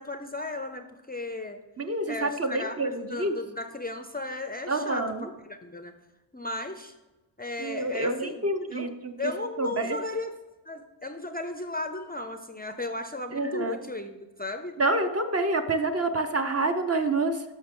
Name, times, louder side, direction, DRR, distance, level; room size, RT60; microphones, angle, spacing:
voice 1, 0.0-1.6 2.1-5.9 6.3-6.9 7.4-10.3 10.7-14.7, left 2 dB, 20° left, 7 dB, 0.5 m, -35 dB
voice 2, 1.8-3.4 4.7-5.3 7.6-9.3 9.6-10.0 13.3-13.8 14.8-17.4, right 2 dB, 30° right, 7 dB, 0.7 m, -27 dB
11.0 x 6.5 x 3.7 m, 1.1 s
wide cardioid pair, 145°, 47 cm